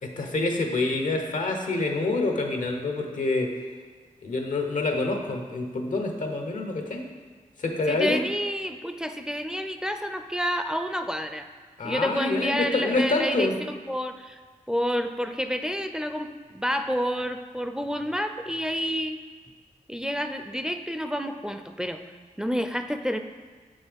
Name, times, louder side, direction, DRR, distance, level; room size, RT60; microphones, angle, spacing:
voice 1, 0.0-3.5 4.2-7.0 7.6-8.3 11.8-13.6, left 2 dB, 85° left, 3 dB, 0.8 m, -27 dB
voice 2, 7.9-11.5 11.8-14.4 14.7-19.2 19.9-22.0 22.4-23.2, equal, 5° right, 7 dB, 0.4 m, -29 dB
7.1 x 5.4 x 3.5 m, 1.5 s
cardioid pair, 55°, 13 cm